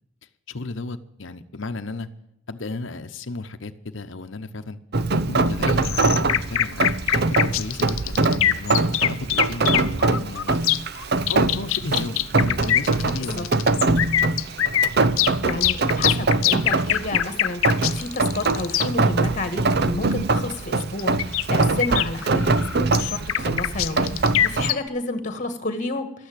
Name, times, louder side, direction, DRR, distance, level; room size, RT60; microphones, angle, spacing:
voice 1, 0.5-2.1 2.5-4.8 5.3-10.7 11.3-13.5, left 3 dB, 60° left, 9 dB, 0.9 m, -33 dB
Rain, 4.9-24.7, right 3 dB, 50° right, 0.7 m, -23 dB
sound 1, 5.7-18.9 21.0-24.9, left 11 dB, 80° left, 0.6 m, -23 dB
voice 2, 15.4-26.3, left 2 dB, 35° left, 8 dB, 1.7 m, -30 dB
12.5 x 9.3 x 8.7 m, 0.81 s
head